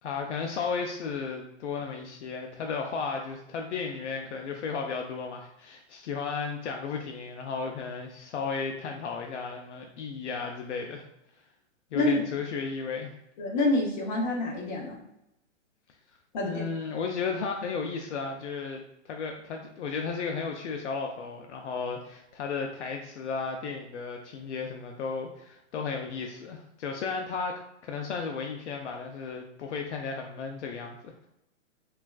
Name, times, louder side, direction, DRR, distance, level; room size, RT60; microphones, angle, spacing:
voice 1, 0.0-11.0 11.9-13.1 16.4-31.3, left 5 dB, 70° left, 2 dB, 0.5 m, -34 dB
voice 2, 13.4-15.0 16.3-16.6, left 2 dB, 40° left, -1 dB, 0.8 m, -27 dB
3.3 x 2.4 x 2.3 m, 0.84 s
hypercardioid pair, 155°, 37 cm